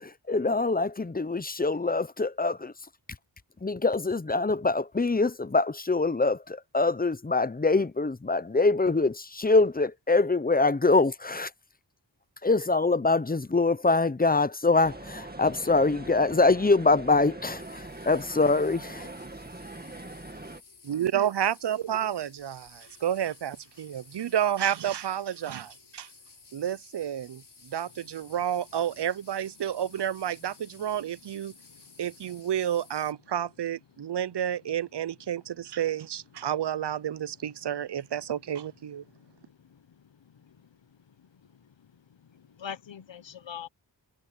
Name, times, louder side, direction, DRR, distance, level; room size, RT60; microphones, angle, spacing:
voice 1, 0.0-2.7 3.6-11.5 12.4-19.1, left 3 dB, 20° left, 0.7 m, -24 dB
sound 1, 14.8-20.6, right 2 dB, 20° right, 2.3 m, -42 dB
sound 2, 17.6-33.1, left 4 dB, 60° left, 4.6 m, -55 dB
voice 2, 20.9-26.1 26.5-31.5 32.0-39.0, right 10 dB, 65° right, 0.6 m, -30 dB
voice 3, 39.1-39.8 40.4-40.6 42.3-43.7, left 8 dB, 80° left, 1.0 m, -43 dB
wide cardioid pair, 85°, 44 cm